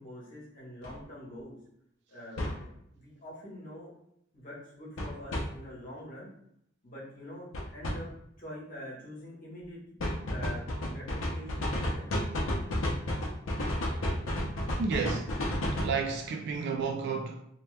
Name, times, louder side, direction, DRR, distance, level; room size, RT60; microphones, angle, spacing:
voice 1, 0.0-1.6 2.1-2.4 2.9-3.9 4.3-6.3 6.8-7.5 7.7-8.1 8.4-9.8 10.3-12.1, equal, 45° left, 1.1 m, -45 dB
sound 1, 0.8-0.9 2.4-2.6 5.0-5.4 7.5-8.0 10.0-16.0, left 1 dB, 90° left, 0.6 m, -31 dB
voice 2, 14.8-15.4 15.7-17.4, right 5 dB, 60° right, 0.3 m, -32 dB
2.9 x 2.2 x 3.1 m
head